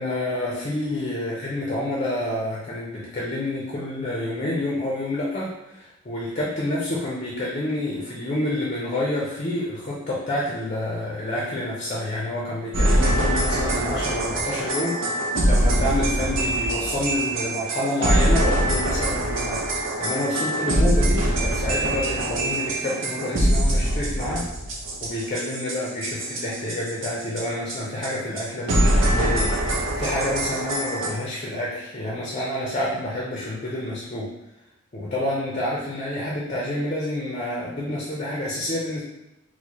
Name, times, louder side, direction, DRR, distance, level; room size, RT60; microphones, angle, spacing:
voice 1, 0.0-24.5 25.0-34.3 34.9-39.0, left 1 dB, 35° left, -4 dB, 0.5 m, -28 dB
sound 1, 12.7-27.4 27.7-27.8 28.0-28.1 28.4-28.5 28.7-31.1, right 1 dB, 75° right, 0.7 m, -23 dB
4.5 x 2.1 x 2.8 m, 0.92 s
head